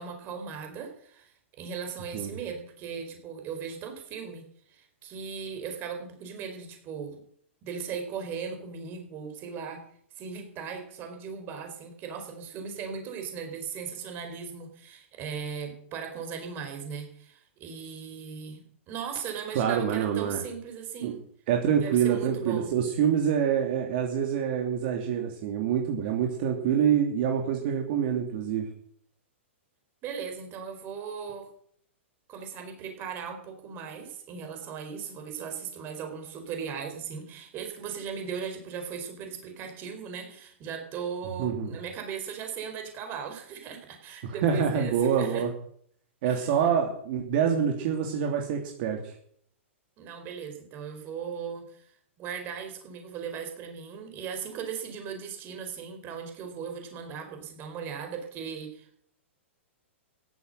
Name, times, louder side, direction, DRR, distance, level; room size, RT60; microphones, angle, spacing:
voice 1, 0.0-7.2 7.6-9.8 10.2-21.2 21.8-22.7 30.0-31.5 32.3-45.4 46.2-46.5 50.0-51.9 52.2-59.0, right 6 dB, 30° right, 5 dB, 4.5 m, -38 dB
voice 2, 19.5-20.4 21.0-21.1 21.5-28.7 41.4-41.7 44.2-45.5 46.2-49.1, right 8 dB, 50° right, 2 dB, 3.0 m, -26 dB
15.5 x 12.0 x 6.6 m, 0.64 s
hypercardioid pair, 145°, 7 cm